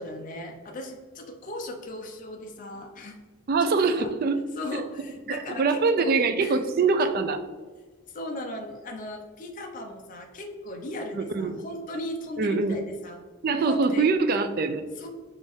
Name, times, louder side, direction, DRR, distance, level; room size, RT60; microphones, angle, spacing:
voice 1, 0.0-3.2 3.6-4.1 4.6-6.1 6.4-6.7 8.1-13.2 13.6-14.1 15.0-15.1, left 1 dB, 35° left, 3 dB, 0.5 m, -37 dB
voice 2, 3.5-4.4 4.7-4.8 5.3-7.4 11.1-11.5 12.4-12.8 13.4-14.9, right 4 dB, 45° right, 8 dB, 0.3 m, -24 dB
5.3 x 2.5 x 3.5 m, 1.4 s
head